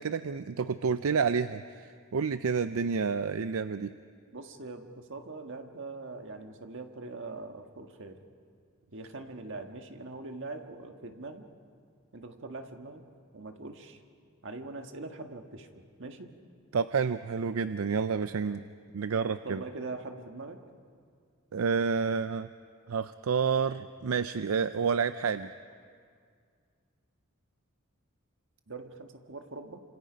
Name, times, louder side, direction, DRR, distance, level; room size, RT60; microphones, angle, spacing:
voice 1, 0.0-3.9 16.7-18.6 18.9-19.6 21.5-22.5 22.9-25.5, right 5 dB, 80° right, 12 dB, 0.5 m, -29 dB
voice 2, 4.3-8.2 8.9-11.5 12.1-13.0 13.3-14.0 14.4-16.3 18.4-18.7 19.4-20.6 28.7-29.8, right 3 dB, 60° right, 4 dB, 1.7 m, -42 dB
29.0 x 26.5 x 5.2 m, 2.1 s
head